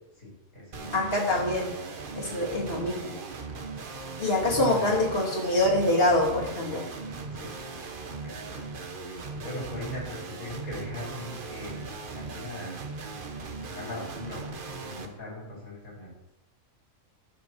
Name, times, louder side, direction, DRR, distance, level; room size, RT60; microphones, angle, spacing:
voice 1, 0.2-1.0 4.1-4.9 7.2-7.5 8.2-8.6 9.0-12.8 13.5-16.1, left 1 dB, 85° left, -5 dB, 4.3 m, -40 dB
sound 1, 0.7-15.1, right 4 dB, 40° right, 1.0 m, -39 dB
voice 2, 0.9-1.7 2.2-3.1 4.2-6.9, left 1 dB, 45° left, -1 dB, 2.4 m, -25 dB
14.5 x 6.1 x 4.5 m, 0.92 s
omnidirectional pair, 1.5 m